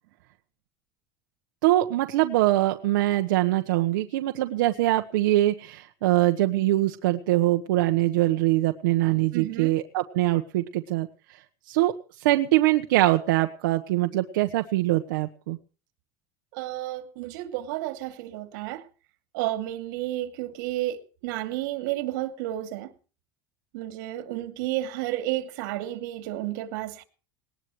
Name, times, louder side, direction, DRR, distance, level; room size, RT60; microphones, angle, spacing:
voice 1, 1.6-11.4 11.7-11.9 12.2-15.6, right 16 dB, 90° right, 1.2 m, -23 dB
voice 2, 9.3-9.7 16.5-18.9 19.3-22.9 23.7-27.0, right 15 dB, 65° right, 2.7 m, -31 dB
20.0 x 19.0 x 3.2 m
cardioid pair, 170°, 11 cm